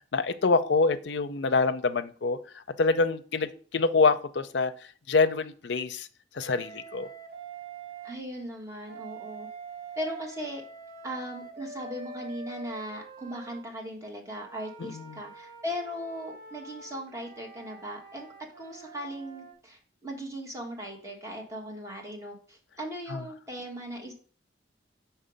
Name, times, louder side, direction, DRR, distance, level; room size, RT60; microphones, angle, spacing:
voice 1, 0.1-4.7 5.1-6.1 6.4-7.1 14.8-15.2 23.1-23.2, left 4 dB, 70° left, 0.5 m, -26 dB
Wind instrument woodwind instrument, 6.4-8.2 8.9-13.6 14.3-19.5, right 4 dB, 55° right, 1.1 m, -45 dB
voice 2, 8.0-9.5 10.0-10.6 11.0-24.1, equal, 15° right, 1.5 m, -38 dB
5.5 x 4.5 x 5.1 m
head